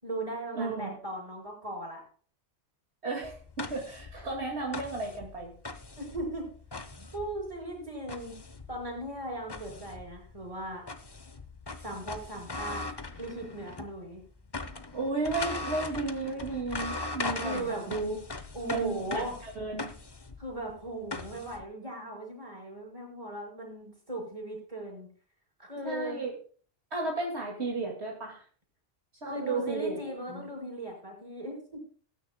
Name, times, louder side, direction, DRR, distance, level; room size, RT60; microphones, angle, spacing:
voice 1, 0.0-2.0 6.0-6.5 7.1-8.4 8.7-10.8 11.8-12.9 13.2-14.2 17.4-17.9 18.5-19.4 20.4-25.1 25.6-26.2 29.3-31.8, right 1 dB, 30° right, 0 dB, 5.3 m, -38 dB
voice 2, 0.5-1.0 3.0-5.5 14.9-18.2 18.6-20.0 25.8-26.3 26.9-28.4 29.2-29.9 30.3-30.5, right 3 dB, 70° right, -1 dB, 2.6 m, -34 dB
sound 1, 3.2-14.0 14.2-21.6, left 3 dB, 25° left, 0.7 m, -40 dB
19.5 x 9.7 x 2.3 m, 0.43 s
omnidirectional pair, 1.2 m